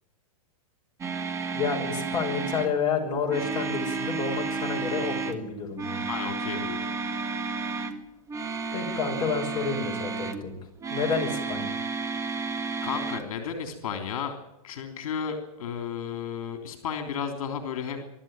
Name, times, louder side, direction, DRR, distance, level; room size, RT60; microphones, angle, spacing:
sound 1, 1.0-2.7 3.3-5.4 5.7-8.0 8.3-10.4 10.8-13.2, right 4 dB, 15° right, 1.7 m, -32 dB
voice 1, 1.5-6.1 8.7-10.5 10.9-11.8, left 5 dB, 25° left, 0 dB, 6.0 m, -29 dB
voice 2, 6.1-6.9 12.8-14.3 14.6-18.0, left 7 dB, 70° left, 5 dB, 3.5 m, -33 dB
24.0 x 13.0 x 8.9 m, 0.90 s
hypercardioid pair, 140°, 19 cm